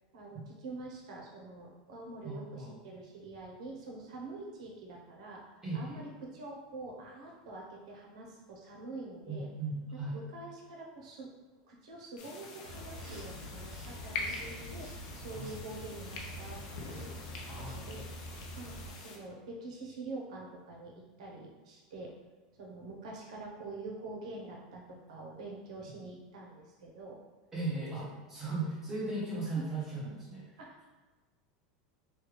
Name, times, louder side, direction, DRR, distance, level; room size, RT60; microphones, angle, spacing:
voice 1, 0.1-9.5 10.1-11.3 11.7-17.1 17.6-18.0 18.6-22.2 22.6-27.2 29.5-29.7 30.6-30.9, right 2 dB, 85° right, -1 dB, 0.8 m, -46 dB
voice 2, 2.2-2.8 5.6-6.0 9.3-10.2 15.3-15.5 17.5-18.0 27.5-30.4, right 3 dB, 10° right, -7 dB, 1.0 m, -37 dB
sound 1, 12.2-19.2, left 3 dB, 65° left, 0.6 m, -44 dB
sound 2, 12.6-18.9, equal, 65° right, 1.3 m, -46 dB
3.2 x 2.3 x 3.2 m, 1.3 s
supercardioid pair, 150°, 4 cm